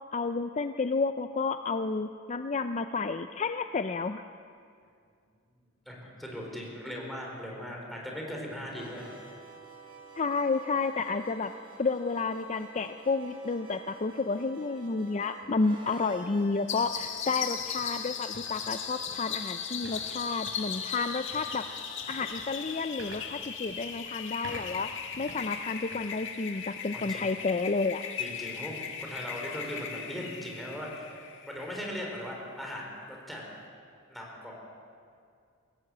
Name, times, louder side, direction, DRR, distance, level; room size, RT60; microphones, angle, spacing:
voice 1, 0.1-4.2 10.2-11.5 11.8-21.7 22.1-24.9 25.2-28.0, left 4 dB, 35° left, 9 dB, 0.5 m, -31 dB
voice 2, 5.9-9.1 26.9-27.3 28.2-28.7 29.0-31.1 31.5-33.4 34.1-34.5, equal, ahead, -2 dB, 4.5 m, -39 dB
sound 1, 8.6-22.3, right 1 dB, 25° right, 4.8 m, -51 dB
sound 2, 15.4-15.5 16.0-26.9 27.3-27.5 28.1-28.4, right 1 dB, 60° right, 4.9 m, -51 dB
sound 3, 16.7-31.9, left 7 dB, 60° left, 2.0 m, -38 dB
22.0 x 16.5 x 8.7 m, 2.3 s
head